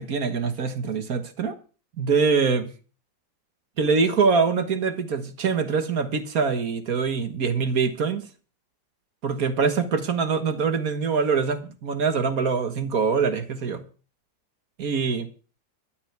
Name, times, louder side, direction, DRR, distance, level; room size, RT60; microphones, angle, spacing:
voice 1, 0.0-1.5 2.0-2.7 3.8-8.2 9.2-13.8 14.8-15.3, right 5 dB, 50° right, 1.8 m, -24 dB
12.5 x 7.0 x 9.5 m
omnidirectional pair, 2.0 m